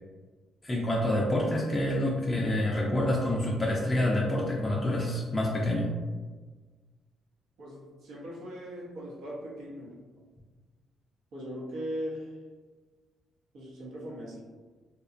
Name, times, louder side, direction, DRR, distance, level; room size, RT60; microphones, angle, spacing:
voice 1, 0.6-5.9, left 1 dB, 25° left, -3 dB, 0.4 m, -27 dB
voice 2, 7.6-10.0 11.3-12.3 13.5-14.4, equal, 80° right, -4 dB, 0.7 m, -39 dB
2.7 x 2.1 x 2.4 m, 1.4 s
cardioid pair, 90°, 0 cm